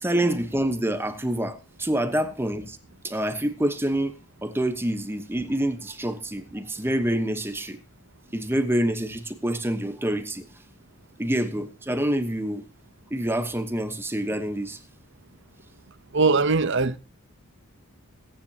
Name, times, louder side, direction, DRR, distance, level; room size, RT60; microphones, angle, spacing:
voice 1, 0.0-2.8 3.0-4.1 4.4-7.8 8.3-10.5 11.2-12.6 13.1-14.8, right 1 dB, 10° right, 1.1 m, -27 dB
voice 2, 16.1-17.0, right 4 dB, 55° right, 0.8 m, -21 dB
21.5 x 10.0 x 2.9 m
head